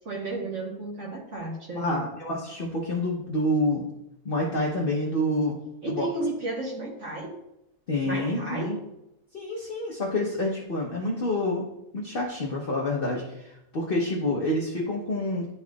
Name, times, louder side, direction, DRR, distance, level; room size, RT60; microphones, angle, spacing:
voice 1, 0.0-2.0 5.8-7.3 8.0-8.8, right 2 dB, 50° right, -2 dB, 1.3 m, -33 dB
voice 2, 1.8-3.9 4.2-5.6 5.8-6.1 7.9-8.8 9.3-11.6 11.9-15.5, left 1 dB, 40° left, -2 dB, 0.9 m, -28 dB
11.0 x 4.1 x 2.3 m, 0.85 s
omnidirectional pair, 1.7 m